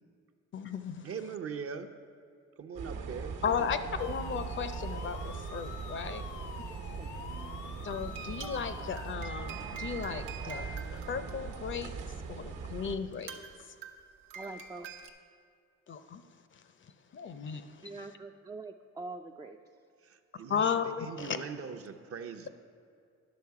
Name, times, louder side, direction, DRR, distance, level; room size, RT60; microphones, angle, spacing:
voice 1, 0.5-1.1 3.4-6.2 7.8-11.9 12.3-13.3 15.9-16.2 16.5-16.6 17.1-18.1 20.5-21.4, left 6 dB, 40° left, 10 dB, 0.5 m, -35 dB
voice 2, 1.0-1.9 2.6-3.3 3.6-3.9 20.0-22.5, right 6 dB, 50° right, 7 dB, 0.6 m, -41 dB
sound 1, 2.8-13.0, right 5 dB, 70° right, 1.1 m, -40 dB
sound 2, 4.0-9.2, left 7 dB, 85° left, 0.6 m, -47 dB
voice 3, 6.8-7.1 14.4-14.9 17.8-19.6, right 3 dB, 15° right, 4 dB, 0.3 m, -44 dB
sound 3, 7.9-12.1 12.8-12.9 13.1-15.1, right 6 dB, 85° right, 0.8 m, -46 dB
10.5 x 6.3 x 4.7 m, 2.3 s
cardioid pair, 90°, 30 cm